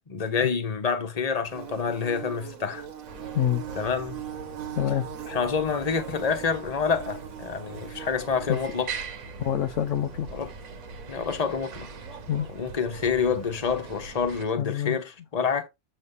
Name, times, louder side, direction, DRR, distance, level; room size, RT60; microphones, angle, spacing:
voice 1, 0.1-2.9 3.7-4.2 5.3-8.9 10.3-10.5 11.1-11.9 12.5-15.7, left 6 dB, 30° left, 1.1 m, -27 dB
Bird / Buzz, 1.5-14.1, right 8 dB, 85° right, 1.6 m, -42 dB
sound 1, 3.1-14.5, right 5 dB, 65° right, 1.4 m, -42 dB
voice 2, 4.7-5.1 8.5-8.6 9.4-10.3 12.3-12.5 14.6-15.0, left 10 dB, 70° left, 0.9 m, -26 dB
7.9 x 3.1 x 5.4 m
omnidirectional pair, 1.4 m